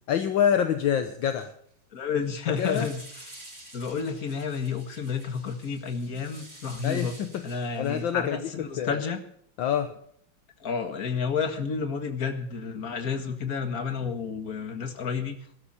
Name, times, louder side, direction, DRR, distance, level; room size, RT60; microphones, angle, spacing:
voice 1, 0.1-1.5 2.6-2.9 6.8-7.4 7.8-8.4 8.8-9.0 9.6-9.9, left 9 dB, 70° left, 9 dB, 1.6 m, -26 dB
sound 1, 0.8-1.0 1.3-1.7 2.1-8.0, right 1 dB, 20° right, 8.2 m, -49 dB
voice 2, 1.9-3.3 3.7-7.2 7.4-9.2 10.6-15.3, left 5 dB, 45° left, 7 dB, 2.1 m, -31 dB
18.0 x 12.5 x 4.2 m, 0.65 s
omnidirectional pair, 2.3 m